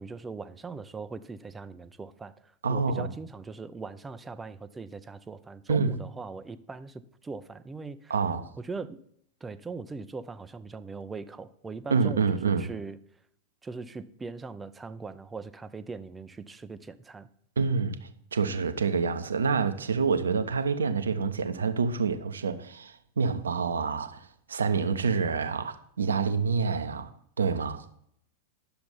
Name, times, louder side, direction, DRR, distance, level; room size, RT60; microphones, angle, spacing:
voice 1, 0.0-8.2 8.6-9.0 9.4-13.0 13.6-17.3, right 4 dB, 15° right, 0.6 m, -40 dB
voice 2, 2.6-3.1 5.7-6.0 8.1-8.5 11.9-12.7 17.6-27.1 27.4-27.8, right 5 dB, 70° right, 0.7 m, -27 dB
9.6 x 6.8 x 5.7 m
figure-of-eight pair, 90°, 0 cm